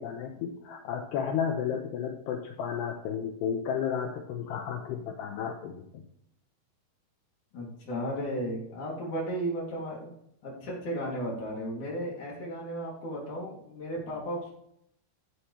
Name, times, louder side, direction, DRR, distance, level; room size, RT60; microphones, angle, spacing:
voice 1, 0.0-6.0, left 7 dB, 75° left, 3 dB, 2.6 m, -33 dB
voice 2, 7.5-10.1 10.4-14.5, right 1 dB, 45° left, -3 dB, 3.7 m, -34 dB
14.5 x 8.3 x 3.3 m, 0.72 s
omnidirectional pair, 5.6 m